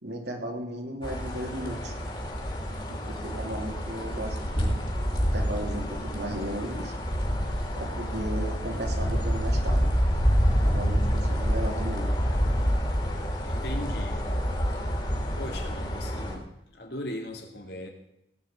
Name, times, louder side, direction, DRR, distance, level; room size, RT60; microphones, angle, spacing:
voice 1, 0.0-1.9 2.9-4.8 5.2-6.9 7.7-9.9 10.6-12.1, right 1 dB, 65° right, 2 dB, 2.7 m, -35 dB
sound 1, 1.0-16.4, equal, 25° left, 3.1 m, -27 dB
voice 2, 13.4-14.6 15.4-17.9, left 1 dB, 60° left, 3 dB, 2.5 m, -39 dB
18.0 x 6.0 x 8.7 m, 0.81 s
head